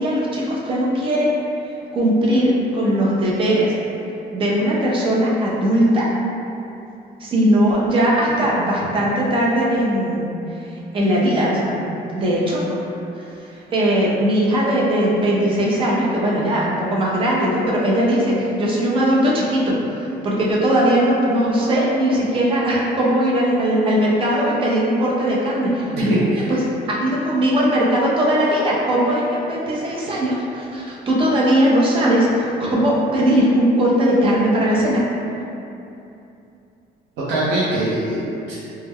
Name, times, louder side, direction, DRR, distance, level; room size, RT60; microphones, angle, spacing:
voice 1, 0.0-1.3 1.9-3.7 4.3-6.1 7.2-10.3 10.9-12.8 13.5-26.2 26.5-26.6 26.9-35.1, equal, 30° right, -5 dB, 0.4 m, -19 dB
voice 2, 25.9-26.4 37.2-38.5, right 1 dB, 85° right, -9 dB, 0.5 m, -22 dB
2.2 x 2.1 x 3.3 m, 2.8 s
cardioid pair, 170°, 17 cm